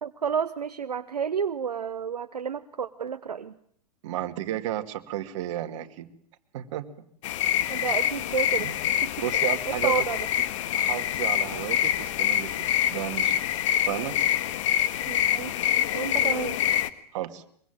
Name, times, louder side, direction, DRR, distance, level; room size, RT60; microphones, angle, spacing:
voice 1, 0.0-3.5 7.7-8.7 9.0-10.3 15.1-15.7 15.9-16.6, right 7 dB, 75° right, 10 dB, 1.1 m, -31 dB
voice 2, 4.0-6.1 6.5-6.9 8.6-8.8 9.2-10.0 10.7-13.4 13.9-14.2 17.1-17.4, right 13 dB, 50° right, 9 dB, 2.2 m, -33 dB
sound 1, 7.2-16.9, left 11 dB, 50° left, 1.5 m, -26 dB
23.5 x 23.0 x 9.0 m, 0.65 s
figure-of-eight pair, 105°, 20 cm